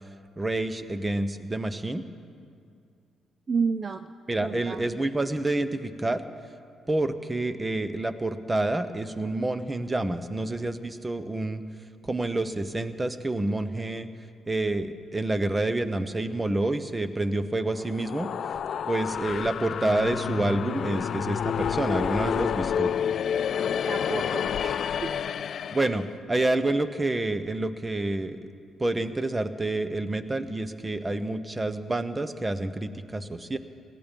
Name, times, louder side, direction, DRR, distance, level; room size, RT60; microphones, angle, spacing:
voice 1, 0.4-2.0 4.3-6.2 6.9-11.6 12.0-14.1 14.5-18.3 18.9-22.9 25.7-28.4 28.8-33.6, right 2 dB, 15° right, 11 dB, 0.8 m, -28 dB
voice 2, 3.5-4.1 4.4-4.8 23.9-25.1, right 5 dB, 40° right, 10 dB, 0.5 m, -30 dB
sound 1, 17.8-26.1, left 8 dB, 60° left, 0.3 m, -29 dB
18.0 x 14.0 x 5.3 m, 2.4 s
cardioid pair, 90°, 0 cm